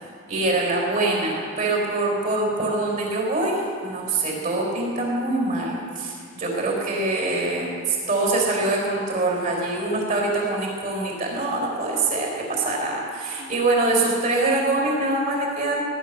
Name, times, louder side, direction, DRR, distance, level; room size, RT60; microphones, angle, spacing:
voice 1, 0.3-15.8, right 2 dB, 40° right, -1 dB, 4.2 m, -24 dB
18.5 x 10.5 x 6.6 m, 2.3 s
head